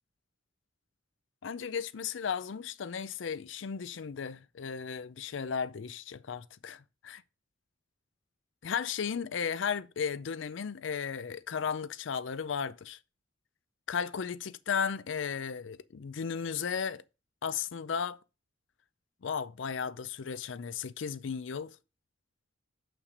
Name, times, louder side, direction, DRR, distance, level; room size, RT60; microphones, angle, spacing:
voice 1, 1.4-7.2 8.6-13.0 13.9-17.0 17.4-18.2 19.2-21.8, left 6 dB, 75° left, 0.5 m, -35 dB
6.6 x 5.9 x 5.2 m
head